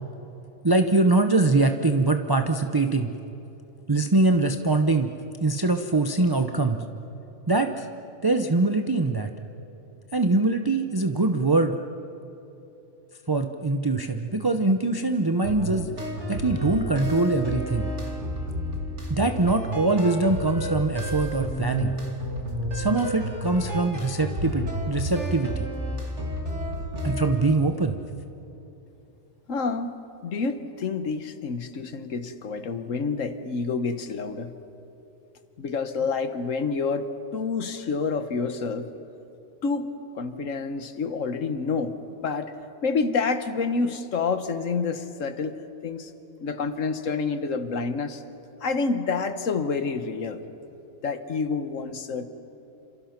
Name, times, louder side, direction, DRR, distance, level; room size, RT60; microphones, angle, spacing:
voice 1, 0.6-3.1 3.9-5.1 5.4-6.8 7.5-7.9 8.2-9.3 10.1-11.8 13.3-15.9 16.3-17.9 19.1-21.9 22.7-25.7 27.0-28.0, right 2 dB, 20° right, 6 dB, 0.7 m, -23 dB
sound 1, 15.4-27.4, equal, 55° right, 3.2 m, -31 dB
voice 2, 29.5-29.9 30.2-34.5 35.6-38.9 39.6-39.9 40.1-41.9 42.2-42.5 42.8-45.6 45.8-46.1 46.4-48.2 48.6-50.4 51.0-52.3, left 4 dB, 70° left, 10 dB, 1.5 m, -28 dB
28.5 x 27.0 x 5.9 m, 2.9 s
omnidirectional pair, 1.4 m